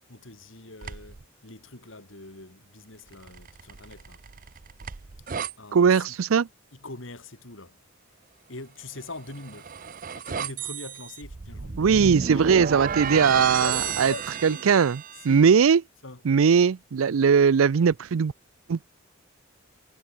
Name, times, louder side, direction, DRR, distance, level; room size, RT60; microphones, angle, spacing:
voice 1, 0.1-4.2 5.6-6.2 6.7-7.8 8.5-9.8 10.1-12.5 13.1-14.6 15.2-15.6 16.0-16.2, left 3 dB, 65° left, 3.2 m, -41 dB
sound 1, 0.8-1.2 3.1-5.5 9.0-15.4, right 6 dB, 40° right, 0.6 m, -33 dB
voice 2, 5.7-6.5 11.8-14.1 14.4-15.8 16.3-18.3 18.7-18.8, right 6 dB, 85° right, 0.5 m, -20 dB
head